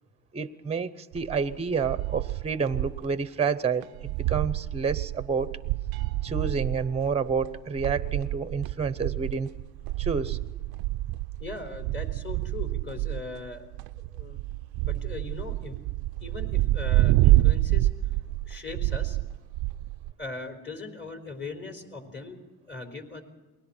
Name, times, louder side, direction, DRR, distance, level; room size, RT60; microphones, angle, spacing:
voice 1, 0.3-5.5 6.2-9.5 10.0-10.4, right 5 dB, 15° right, 13 dB, 0.8 m, -29 dB
sound 1, 1.1-3.1 3.4-3.5 3.8-20.1, right 17 dB, 85° right, 0.6 m, -28 dB
voice 2, 11.4-13.6 14.1-14.4 14.8-15.8 16.2-17.9 18.5-19.2 20.2-22.4 22.6-23.2, left 3 dB, 30° left, 5 dB, 4.1 m, -39 dB
29.0 x 21.0 x 4.4 m, 1.2 s
cardioid pair, 120°, 36 cm